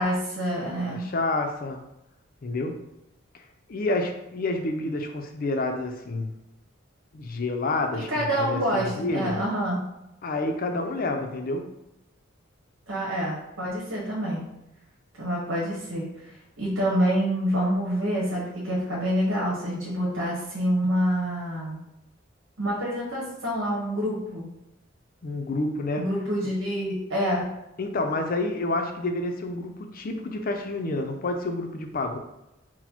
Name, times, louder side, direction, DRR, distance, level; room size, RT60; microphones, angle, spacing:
voice 1, 0.0-1.1 8.0-9.8 12.9-14.4 15.2-21.8 22.6-24.5 26.0-27.5, equal, 90° right, -5 dB, 1.1 m, -27 dB
voice 2, 0.9-1.8 2.4-2.8 3.7-6.3 7.1-9.4 10.2-11.7 25.2-26.1 27.8-32.2, left 2 dB, 45° left, 5 dB, 0.5 m, -29 dB
4.1 x 2.1 x 4.3 m, 0.89 s
head